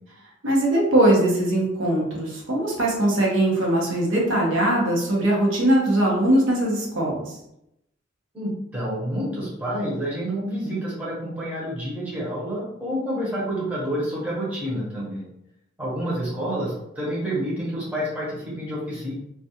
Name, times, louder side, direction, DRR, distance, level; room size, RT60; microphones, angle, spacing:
voice 1, 0.4-7.2, right 1 dB, 75° right, -3 dB, 0.8 m, -21 dB
voice 2, 8.3-15.3 15.8-19.1, equal, 5° right, -7 dB, 0.8 m, -28 dB
2.3 x 2.2 x 2.8 m, 0.82 s
head